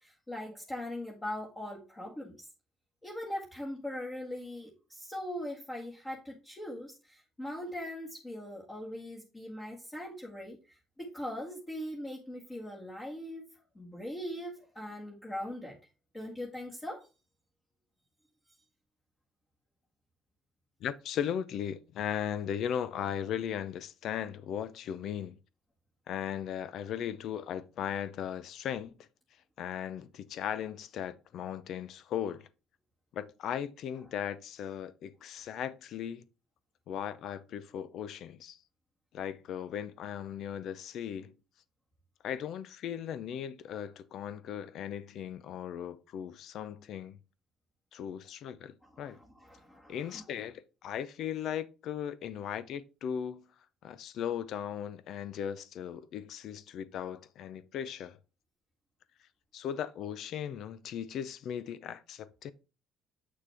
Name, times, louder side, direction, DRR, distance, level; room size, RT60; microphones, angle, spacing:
voice 1, 0.0-2.5 3.0-13.5 13.8-15.8 16.1-17.1 48.8-50.2, left 1 dB, 20° left, 1.8 m, -41 dB
voice 2, 20.8-25.4 26.1-29.1 29.6-32.5 33.1-36.2 36.9-38.6 39.1-41.3 42.2-47.2 47.9-49.2 49.9-53.4 53.8-58.2 59.5-62.5, left 9 dB, 60° left, 0.7 m, -37 dB
7.8 x 6.3 x 3.5 m
cardioid pair, 125°, 0 cm